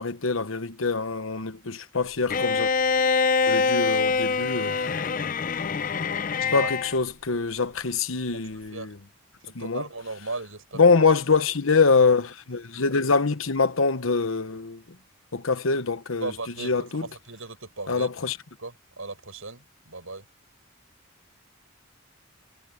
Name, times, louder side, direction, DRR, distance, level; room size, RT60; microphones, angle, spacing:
voice 1, 0.0-2.7 3.5-4.7 6.5-9.0 9.5-9.9 10.7-14.8 15.3-16.3 16.6-17.1 17.9-18.4, left 4 dB, 75° left, 1.1 m, -24 dB
Bowed string instrument, 2.3-7.0, left 4 dB, 40° left, 0.5 m, -24 dB
voice 2, 6.4-6.7 8.3-8.9 9.4-10.8 16.2-18.1 18.6-20.2, right 3 dB, 80° right, 5.8 m, -37 dB
head